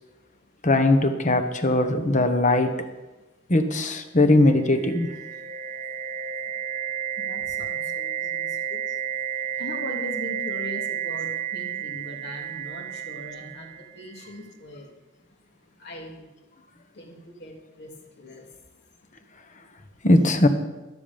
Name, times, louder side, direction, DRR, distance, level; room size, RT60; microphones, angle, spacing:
voice 1, 0.6-2.7 3.5-5.1 20.0-20.5, left 2 dB, 40° left, 8 dB, 1.2 m, -20 dB
sound 1, 4.4-14.3, right 9 dB, 35° right, 0.5 m, -32 dB
voice 2, 7.2-14.9 15.3-16.3 16.9-19.9, left 1 dB, 60° left, 1 dB, 2.9 m, -41 dB
13.0 x 13.0 x 5.3 m, 1.1 s
head